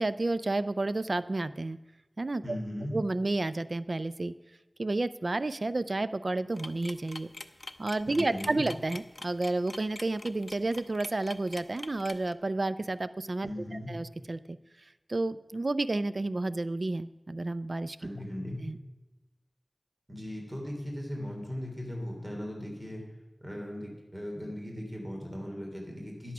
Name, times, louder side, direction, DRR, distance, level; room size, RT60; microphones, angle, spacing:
voice 1, 0.0-1.8 2.2-2.6 2.9-4.3 4.8-7.3 7.8-18.1 18.6-18.8, right 2 dB, 55° right, 15 dB, 0.3 m, -31 dB
voice 2, 2.4-3.0 8.1-8.7 13.4-13.9 18.0-18.6 20.1-23.0 23.4-26.3, left 1 dB, 25° right, 0 dB, 3.0 m, -38 dB
sound 1, 6.6-12.3, left 2 dB, 45° left, 0.6 m, -44 dB
11.0 x 8.4 x 5.9 m, 1.1 s
wide cardioid pair, 55°, 0 cm